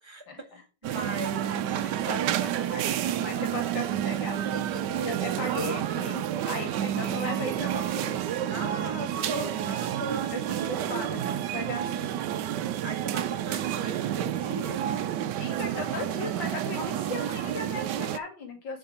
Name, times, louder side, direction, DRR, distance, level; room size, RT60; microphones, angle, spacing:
voice 1, 0.3-0.6 0.9-1.0 1.5-8.2 9.4-9.7 10.3-12.2 15.4-18.8, left 2 dB, 70° left, 2.9 m, -37 dB
voice 2, 0.8-1.9 8.4-10.9 12.8-15.1 16.7-17.3, right 1 dB, 15° right, 1.7 m, -38 dB
sound 1, 0.8-18.2, right 11 dB, 70° right, 1.2 m, -30 dB
7.4 x 4.8 x 5.7 m
omnidirectional pair, 2.2 m